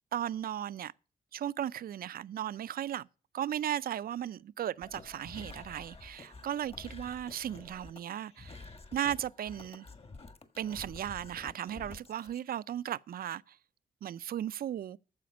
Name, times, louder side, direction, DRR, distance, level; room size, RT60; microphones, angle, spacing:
voice 1, 0.1-0.9 1.3-3.1 3.3-8.6 8.9-9.9 10.6-13.6 14.0-15.0, right 10 dB, 80° right, 0.4 m, -36 dB
sound 1, 4.8-12.4, left 3 dB, 40° left, 1.7 m, -50 dB
14.5 x 5.1 x 6.1 m
cardioid pair, 95°, 15 cm